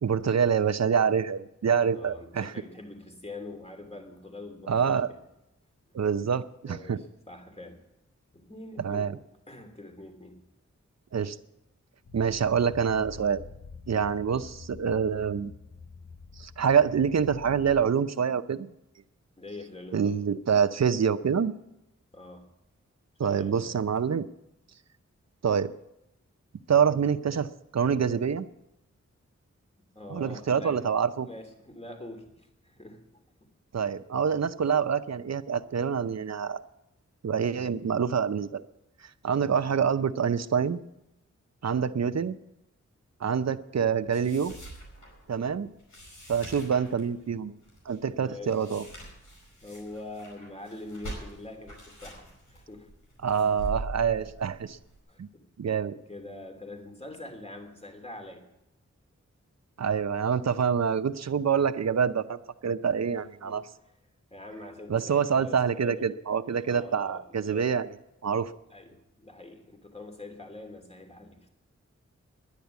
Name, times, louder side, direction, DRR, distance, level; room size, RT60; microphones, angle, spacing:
voice 1, 0.0-2.5 4.7-5.1 5.9-7.0 8.8-9.2 11.1-11.4 12.1-13.4 13.9-15.5 16.4-18.7 19.9-21.5 23.2-24.2 25.4-25.7 26.7-28.5 30.1-31.3 33.7-36.6 37.2-38.6 39.0-40.8 41.6-42.4 43.2-44.5 45.3-45.7 46.3-47.5 47.9-48.8 53.2-54.8 55.2-55.3 55.6-56.0 59.8-63.6 64.9-67.9 68.2-68.5, right 7 dB, 65° right, 11 dB, 0.7 m, -26 dB
voice 2, 1.9-5.1 6.6-7.8 8.3-9.1 9.5-10.4 19.4-20.2 22.1-22.4 23.2-23.8 29.9-30.8 31.2-33.0 39.3-39.5 48.0-48.7 49.6-52.9 53.4-53.6 54.2-54.3 55.1-55.4 56.1-58.4 63.4-63.6 64.3-66.1 66.5-67.7 68.7-71.5, left 2 dB, 20° left, 4 dB, 3.1 m, -44 dB
sound 1, 12.0-17.8, left 5 dB, 65° left, 1.1 m, -47 dB
sound 2, 44.1-55.0, right 2 dB, 90° left, 5.1 m, -43 dB
10.5 x 10.5 x 8.3 m, 0.87 s
cardioid pair, 45°, 29 cm